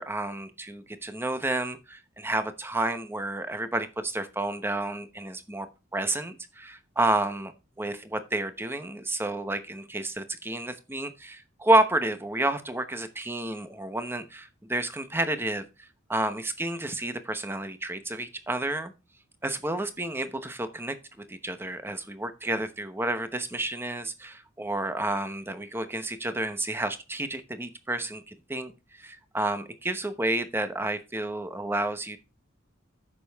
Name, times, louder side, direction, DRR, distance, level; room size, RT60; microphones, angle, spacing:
voice 1, 0.0-5.7 5.9-7.5 7.8-18.9 19.4-21.0 21.3-28.7 29.0-32.2, right 1 dB, 10° right, 0.9 m, -30 dB
9.9 x 6.9 x 3.5 m
head